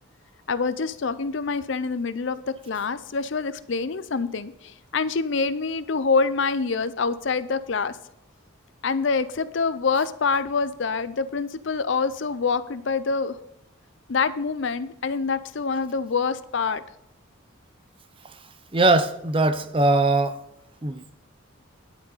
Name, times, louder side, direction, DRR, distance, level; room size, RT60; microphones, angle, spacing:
voice 1, 0.5-8.0 8.8-13.4 14.1-16.8, left 4 dB, 60° left, 14 dB, 0.5 m, -26 dB
voice 2, 18.7-20.4 20.8-21.0, right 2 dB, 25° right, 10 dB, 0.7 m, -20 dB
10.5 x 8.6 x 4.1 m, 0.79 s
head